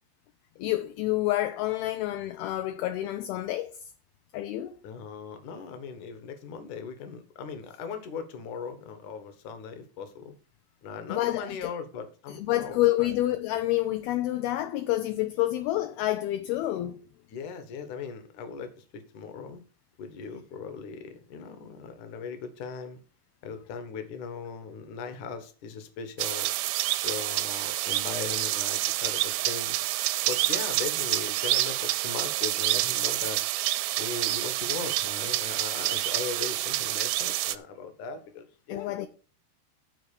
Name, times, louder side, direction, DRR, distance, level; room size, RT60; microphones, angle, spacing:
voice 1, 0.6-3.7 4.3-4.8 11.1-11.7 12.3-17.0 38.7-39.1, left 15 dB, 80° left, 2.3 m, -28 dB
voice 2, 4.8-10.3 10.8-13.1 17.3-19.6 20.0-23.0 23.4-26.5 27.0-29.8 30.3-33.4 34.0-39.1, left 5 dB, 60° left, 2.4 m, -39 dB
sound 1, 26.2-37.6, right 16 dB, 85° right, 2.8 m, -28 dB
12.5 x 4.5 x 7.0 m
omnidirectional pair, 5.0 m